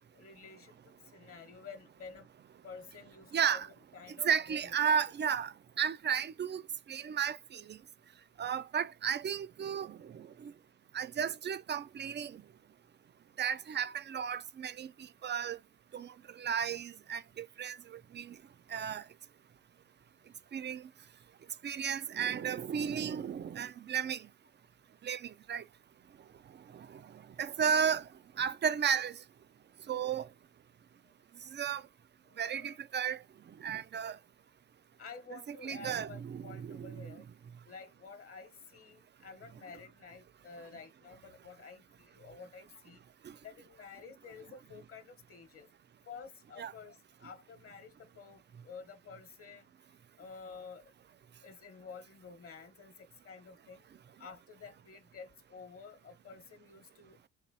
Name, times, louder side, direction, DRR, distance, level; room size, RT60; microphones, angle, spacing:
voice 1, 0.1-2.3 2.6-4.7 31.0-31.1 32.3-32.8 35.0-37.2 37.6-43.0 43.4-45.7 46.0-49.7 50.2-50.9 51.4-53.9 54.2-57.2, left 5 dB, 50° left, 1.1 m, -51 dB
voice 2, 3.3-3.7 4.1-6.6 6.9-7.8 8.4-10.5 10.9-12.4 13.4-15.6 15.9-18.4 18.7-19.0 20.5-20.9 21.6-24.3 25.0-25.6 26.7-28.1 28.4-29.2 29.9-30.3 31.5-31.8 32.4-33.2 33.6-34.2 35.5-37.2 43.2-43.4 46.6-46.7, right 7 dB, 35° right, 0.4 m, -34 dB
4.2 x 2.9 x 2.7 m
cardioid pair, 90°, 30 cm